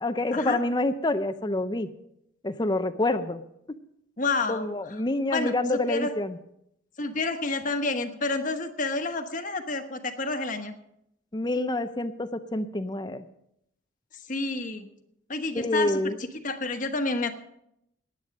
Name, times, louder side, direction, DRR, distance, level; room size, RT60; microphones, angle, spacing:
voice 1, 0.0-1.9 2.4-3.4 4.5-6.4 11.3-13.2 15.6-16.2, left 2 dB, 20° left, 10 dB, 0.6 m, -27 dB
voice 2, 4.2-4.6 5.3-6.1 7.0-10.7 14.3-14.9 15.3-16.1 16.4-17.4, left 3 dB, 40° left, 7 dB, 1.2 m, -29 dB
16.0 x 10.5 x 5.2 m, 0.77 s
head